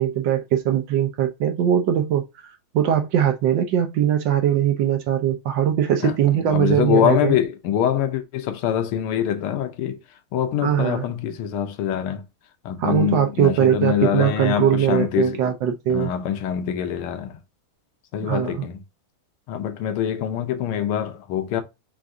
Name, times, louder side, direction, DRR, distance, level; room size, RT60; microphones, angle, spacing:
voice 1, 0.0-2.5 2.7-7.4 10.6-11.1 12.8-16.1 18.2-18.7, right 10 dB, 70° right, 1.2 m, -21 dB
voice 2, 6.4-10.0 10.3-12.2 12.6-15.4 15.9-17.4 18.1-18.8 19.5-21.6, left 10 dB, 85° left, 1.6 m, -24 dB
4.8 x 2.6 x 3.4 m
omnidirectional pair, 2.3 m